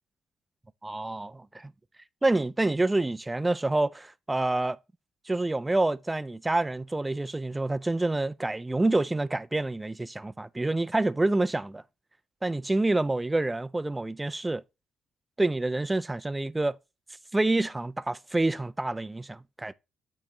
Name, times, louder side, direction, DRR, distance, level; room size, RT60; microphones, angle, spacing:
voice 1, 0.8-1.7 2.2-4.8 5.3-11.8 12.4-14.6 15.4-16.8 17.3-19.7, right 2 dB, 15° right, 0.3 m, -27 dB
8.4 x 3.0 x 3.6 m
cardioid pair, 90°, 0 cm